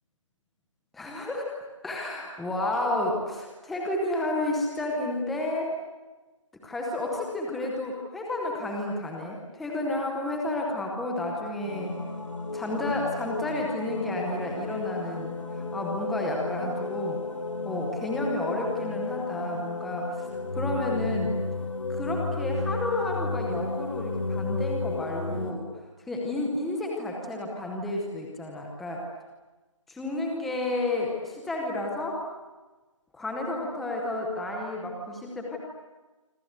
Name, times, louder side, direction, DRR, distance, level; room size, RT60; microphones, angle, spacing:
voice 1, 0.9-1.5 1.8-5.7 6.6-11.9 12.5-17.2 17.6-20.3 20.5-21.4 21.9-25.7 26.1-29.0 29.9-32.2 33.1-35.6, left 2 dB, ahead, -1 dB, 0.8 m, -31 dB
sound 1, 11.6-25.5, left 3 dB, 75° left, 5.8 m, -33 dB
27.0 x 26.5 x 8.1 m, 1.2 s
figure-of-eight pair, 170°, 17 cm